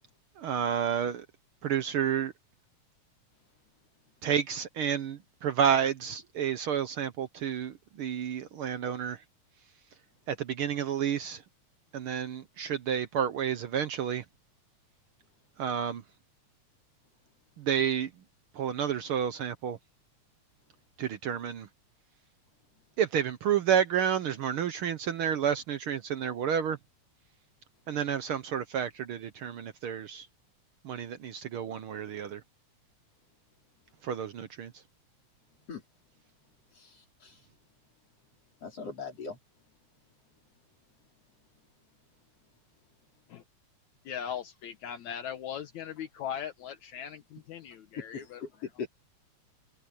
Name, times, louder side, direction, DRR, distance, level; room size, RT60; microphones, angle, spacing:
voice 1, 0.4-1.2 1.6-2.3 4.2-9.2 10.3-11.4 11.9-14.2 15.6-16.0 17.6-18.1 18.6-19.8 21.0-21.7 23.0-26.8 27.9-30.3 30.8-32.4 34.0-34.7, right 8 dB, 70° right, 1.3 m, -30 dB
voice 2, 36.7-37.4 38.6-39.4 48.0-48.5 48.8-48.9, left 5 dB, 55° left, 5.1 m, -40 dB
voice 3, 44.0-48.7, left 9 dB, 70° left, 2.5 m, -39 dB
omnidirectional pair, 3.4 m